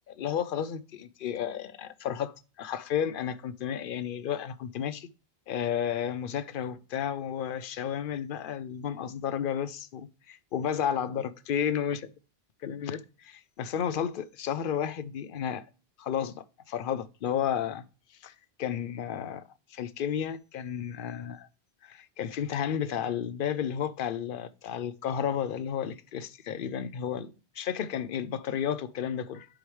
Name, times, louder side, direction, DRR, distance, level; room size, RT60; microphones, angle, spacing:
voice 1, 0.1-5.1 5.5-12.1 12.6-15.6 16.0-17.8 18.2-18.3 18.6-19.4 19.7-21.5 21.8-29.5, left 8 dB, 60° left, 0.7 m, -32 dB
11.5 x 5.0 x 3.1 m
omnidirectional pair, 1.0 m